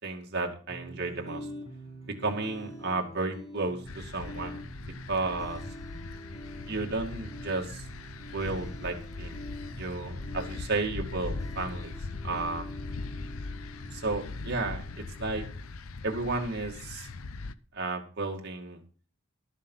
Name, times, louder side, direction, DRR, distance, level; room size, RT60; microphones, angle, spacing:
voice 1, 0.0-1.5 2.2-4.6 5.1-5.6 6.7-7.9 8.3-9.3 9.8-11.9 12.2-12.7 13.9-15.4 16.0-17.1 17.7-18.8, right 3 dB, 45° right, 2 dB, 2.2 m, -33 dB
sound 1, 0.7-15.7, equal, 30° left, 5.9 m, -45 dB
sound 2, 3.9-17.5, left 3 dB, 70° left, 0.7 m, -40 dB
12.5 x 7.4 x 5.6 m, 0.40 s
head